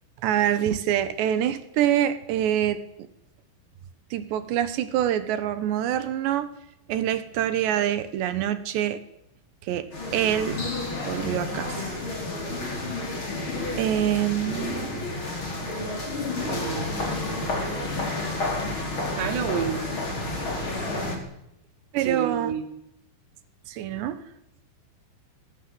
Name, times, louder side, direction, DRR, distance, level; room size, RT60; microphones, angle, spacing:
voice 1, 0.2-2.8 4.1-6.5 6.9-9.0 9.7-10.6 11.1-12.0 13.8-15.1 21.9-22.5 23.7-24.2, right 11 dB, 70° right, 12 dB, 3.2 m, -25 dB
sound 1, 9.9-21.2, left 2 dB, 25° left, 4.8 m, -30 dB
voice 2, 16.4-16.9 19.1-19.9 22.0-22.7, right 7 dB, 90° right, 5 dB, 5.6 m, -29 dB
22.0 x 20.5 x 8.0 m, 0.81 s
omnidirectional pair, 5.9 m